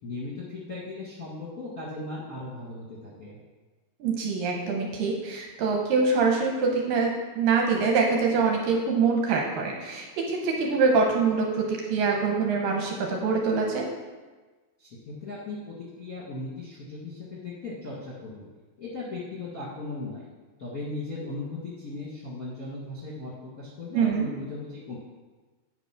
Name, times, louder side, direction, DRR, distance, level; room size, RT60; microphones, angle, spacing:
voice 1, 0.0-3.4 14.8-18.5 18.8-20.3 20.6-24.9, left 2 dB, 40° left, -8 dB, 1.3 m, -37 dB
voice 2, 4.0-13.8 23.9-24.3, right 4 dB, 70° right, 0 dB, 2.5 m, -24 dB
8.8 x 6.1 x 5.8 m, 1.3 s
omnidirectional pair, 4.5 m